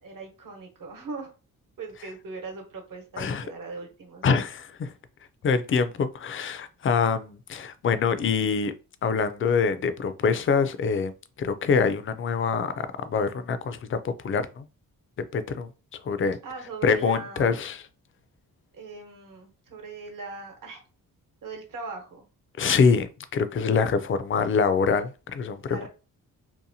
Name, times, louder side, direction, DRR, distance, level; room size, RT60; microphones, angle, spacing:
voice 1, 0.0-1.3 1.8-4.4 16.4-17.7 18.7-20.8 21.4-22.2 25.7-25.9, right 3 dB, 60° right, 1.0 m, -40 dB
voice 2, 4.2-4.9 5.4-8.7 9.0-11.1 11.4-14.7 15.3-15.7 16.1-16.4 16.8-17.8 22.6-25.9, left 5 dB, 35° left, 0.4 m, -25 dB
2.7 x 2.1 x 2.7 m
cardioid pair, 60°, 36 cm